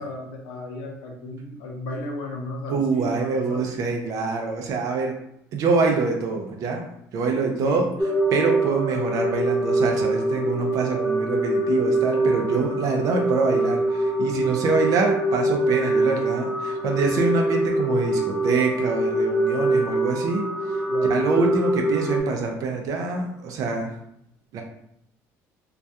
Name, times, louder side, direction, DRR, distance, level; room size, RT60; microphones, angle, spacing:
voice 1, 0.0-3.7 7.6-7.8 20.9-21.2, left 2 dB, 85° left, 0 dB, 0.6 m, -34 dB
voice 2, 2.7-5.2 5.5-6.8 7.1-20.4 21.1-23.9 24.5-24.6, right 4 dB, 60° right, 2 dB, 0.4 m, -25 dB
sound 1, 8.0-22.2, right 2 dB, 10° right, 0.6 m, -24 dB
2.3 x 2.2 x 2.7 m, 0.77 s
cardioid pair, 110°, 7 cm